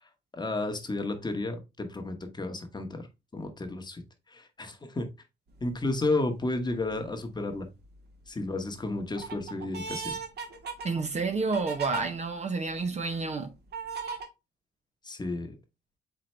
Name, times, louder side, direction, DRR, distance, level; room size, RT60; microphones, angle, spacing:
voice 1, 0.3-3.1 3.3-4.0 4.3-5.0 5.6-7.7 8.3-10.2 15.1-15.6, left 2 dB, 20° left, 1.0 m, -32 dB
sound 1, 5.6-5.9 6.5-7.2 7.7-8.3 8.7-12.0 12.7-12.8 13.7-14.3, right 5 dB, 55° right, 1.3 m, -38 dB
voice 2, 10.8-13.5, right 4 dB, 35° right, 0.6 m, -30 dB
4.4 x 3.8 x 3.2 m
cardioid pair, 90°, 20 cm